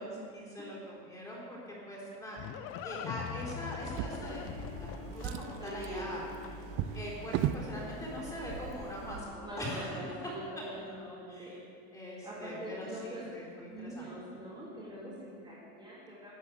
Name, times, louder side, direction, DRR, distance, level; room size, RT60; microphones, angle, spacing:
voice 1, 0.0-2.5 2.8-6.2 6.9-9.9 10.6-11.5 11.9-14.1, equal, 10° left, -5 dB, 4.1 m, -42 dB
Livestock farm animals working animals, 1.7-6.8, left 8 dB, 40° left, 0.7 m, -43 dB
Drawer open or close, 3.8-4.8 5.1-7.7 8.6-8.7 9.1-9.2, right 11 dB, 40° right, 0.5 m, -37 dB
sound 1, 4.0-9.2, right 1 dB, 85° right, 1.6 m, -46 dB
voice 2, 5.6-6.2 9.3-11.5 12.2-13.2 13.7-16.4, right 1 dB, 15° right, -9 dB, 3.0 m, -43 dB
12.5 x 7.6 x 8.5 m, 2.4 s
supercardioid pair, 150°, 32 cm